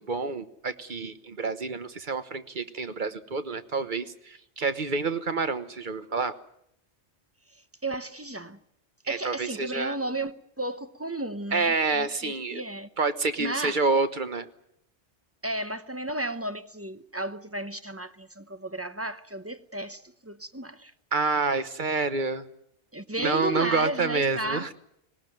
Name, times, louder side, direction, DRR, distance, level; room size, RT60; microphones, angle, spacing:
voice 1, 0.0-6.3 9.0-10.0 11.5-12.6 13.0-14.5 21.1-22.4 23.2-24.7, right 4 dB, 45° right, 1.3 m, -28 dB
voice 2, 7.5-8.6 9.1-12.9 13.4-13.8 15.4-20.9 22.9-24.7, right 2 dB, 15° right, 0.8 m, -33 dB
19.5 x 19.0 x 9.2 m
omnidirectional pair, 1.2 m